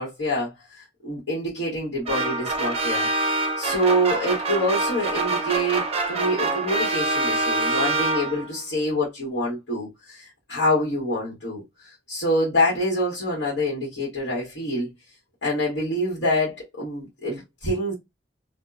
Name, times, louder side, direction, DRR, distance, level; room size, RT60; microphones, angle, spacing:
voice 1, 0.0-3.1 3.6-11.6 12.1-14.9 15.4-17.9, equal, 90° left, 1.3 m, -26 dB
sound 1, 2.1-8.6, right 2 dB, 35° right, 0.5 m, -25 dB
2.6 x 2.1 x 2.3 m
head